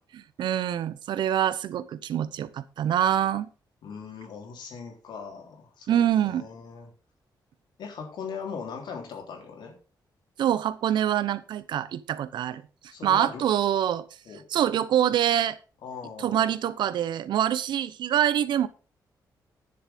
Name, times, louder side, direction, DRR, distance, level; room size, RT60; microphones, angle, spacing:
voice 1, 0.1-3.5 5.9-6.5 10.4-12.6 13.0-14.1 14.5-15.6 16.2-18.7, right 10 dB, 85° right, 16 dB, 0.8 m, -25 dB
voice 2, 3.8-6.9 7.8-9.7 12.9-13.4 14.3-14.4 15.8-16.5, left 6 dB, 80° left, 2 dB, 3.5 m, -39 dB
10.5 x 7.1 x 5.2 m, 0.35 s
wide cardioid pair, 155°, 8 cm